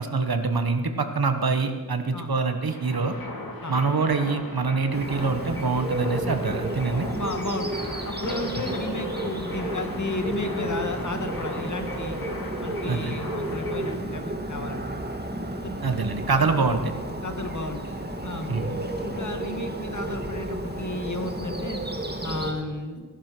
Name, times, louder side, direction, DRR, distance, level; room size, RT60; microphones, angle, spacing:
voice 1, 0.0-3.2 3.7-7.1 12.9-13.2 15.8-16.9 18.5-18.8, right 4 dB, 90° right, 7 dB, 1.2 m, -25 dB
sound 1, 2.7-14.0, left 2 dB, 75° left, 2.1 m, -38 dB
Bird, 4.9-22.5, right 1 dB, 30° right, 1.8 m, -32 dB
voice 2, 7.1-12.2 12.6-14.9 15.6-15.9 17.2-21.8 22.2-23.0, left 2 dB, 55° left, 6 dB, 1.7 m, -33 dB
16.5 x 11.5 x 6.1 m, 1.4 s
wide cardioid pair, 45°, 35 cm